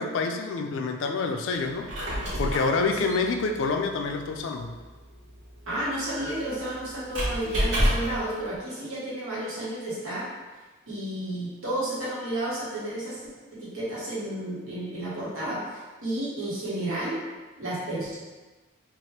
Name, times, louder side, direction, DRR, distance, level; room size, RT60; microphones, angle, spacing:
voice 1, 0.0-4.7, left 4 dB, 70° left, 4 dB, 0.3 m, -28 dB
Squeak, 1.7-8.3, equal, 60° right, 1.0 m, -30 dB
voice 2, 5.7-10.3 10.9-13.3 13.6-17.2 17.6-18.2, right 1 dB, 90° right, -8 dB, 1.2 m, -32 dB
2.7 x 2.4 x 3.2 m, 1.3 s
head